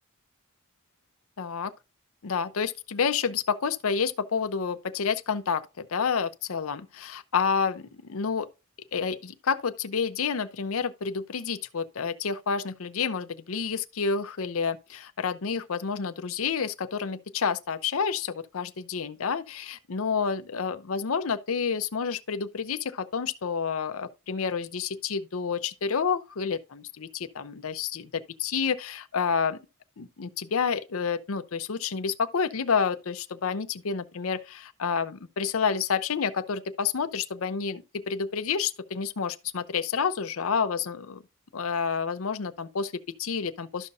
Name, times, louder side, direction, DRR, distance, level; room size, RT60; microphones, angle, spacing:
voice 1, 1.4-1.7 2.2-8.5 8.9-29.6 30.0-41.2 41.5-43.9, left 6 dB, 70° left, 0.6 m, -29 dB
13.0 x 5.4 x 2.4 m
head